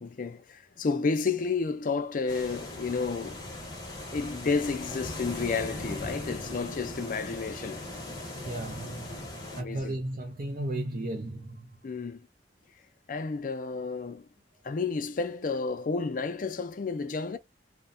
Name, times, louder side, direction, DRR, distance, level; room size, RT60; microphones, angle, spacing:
voice 1, 0.0-3.5 4.1-7.9 9.6-10.0 11.8-12.3 13.1-14.3 14.6-17.4, left 4 dB, 50° left, 0.4 m, -31 dB
sound 1, 2.3-9.6, left 1 dB, 20° left, 0.8 m, -39 dB
voice 2, 8.4-9.2 9.5-11.7, right 1 dB, 50° right, 0.6 m, -35 dB
2.8 x 2.1 x 2.5 m
head